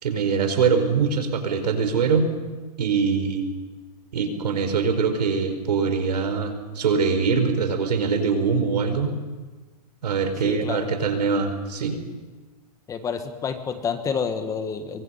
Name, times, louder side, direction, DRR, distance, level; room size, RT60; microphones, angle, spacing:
voice 1, 0.0-2.3 2.8-3.5 4.1-9.1 10.0-12.0, right 5 dB, 85° right, 7 dB, 4.5 m, -23 dB
voice 2, 10.4-10.9 12.9-15.0, left 6 dB, 15° left, 8 dB, 1.5 m, -29 dB
26.0 x 23.5 x 5.7 m, 1.3 s
hypercardioid pair, 150°, 20 cm